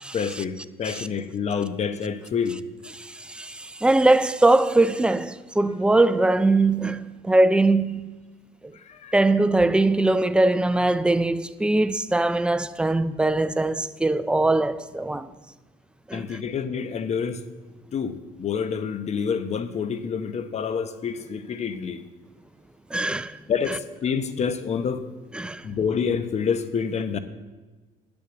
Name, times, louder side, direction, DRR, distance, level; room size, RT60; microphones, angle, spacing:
voice 1, 0.1-2.6 8.7-9.1 16.1-17.4 17.9-22.0 23.5-25.1 25.6-27.2, left 6 dB, 40° left, 0.9 m, -27 dB
voice 2, 3.0-8.1 9.1-15.3 16.1-16.4 22.9-23.4 23.7-23.8 25.3-25.6, right 2 dB, 5° right, 0.4 m, -21 dB
9.7 x 7.1 x 7.8 m
cardioid pair, 110°, 17 cm